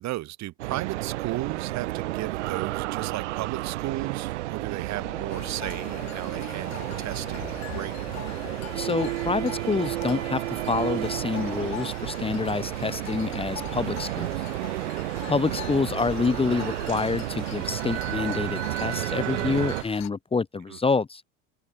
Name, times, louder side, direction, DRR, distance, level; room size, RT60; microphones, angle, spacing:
voice 1, 0.0-8.1 20.7-20.8, right 16 dB, 50° right, 2.0 m, -35 dB
sound 1, 0.6-19.8, right 17 dB, 75° right, 2.2 m, -31 dB
sound 2, 4.9-9.1, left 11 dB, 90° left, 3.2 m, -47 dB
sound 3, 5.3-20.1, left 16 dB, 50° left, 2.0 m, -42 dB
voice 2, 8.7-14.3 15.3-21.2, left 4 dB, 15° left, 1.1 m, -27 dB
hypercardioid pair, 80°, 35 cm